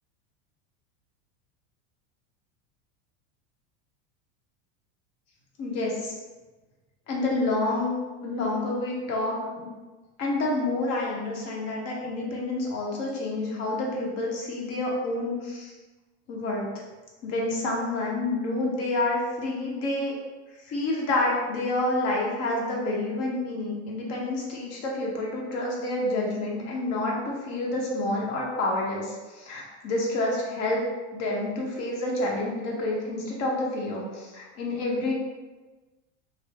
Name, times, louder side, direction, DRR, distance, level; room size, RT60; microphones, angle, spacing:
voice 1, 5.6-6.1 7.1-9.7 10.2-15.7 16.3-16.7 17.2-20.1 20.6-30.8 31.1-35.1, left 2 dB, 45° left, -2 dB, 0.8 m, -28 dB
3.1 x 2.0 x 3.3 m, 1.2 s
supercardioid pair, 140°, 35 cm